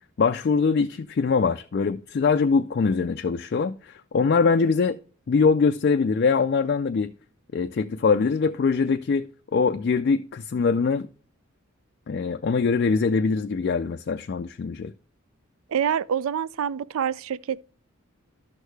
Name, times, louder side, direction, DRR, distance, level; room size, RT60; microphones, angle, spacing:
voice 1, 0.2-5.0 5.3-7.1 7.5-11.1 12.1-14.9, left 5 dB, 45° left, 0.3 m, -23 dB
voice 2, 15.7-17.6, right 8 dB, 75° right, 0.4 m, -26 dB
11.5 x 6.4 x 3.3 m
head